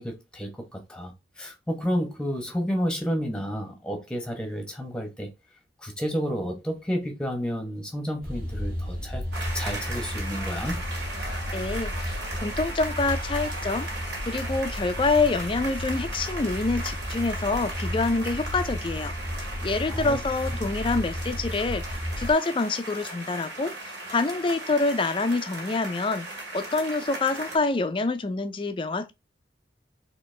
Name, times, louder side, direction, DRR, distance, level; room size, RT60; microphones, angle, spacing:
voice 1, 0.0-5.3 5.8-9.3 9.5-10.8 19.9-20.2, equal, 5° left, 0.9 m, -31 dB
sound 1, 8.2-22.3, left 1 dB, 50° right, 1.5 m, -33 dB
sound 2, 9.3-27.6, right 2 dB, 70° right, 1.9 m, -37 dB
voice 2, 11.5-12.1 12.4-13.9 14.2-19.1 19.6-21.8 22.2-23.7 24.1-26.3 26.5-29.1, left 3 dB, 25° left, 0.4 m, -26 dB
4.1 x 2.9 x 3.2 m
head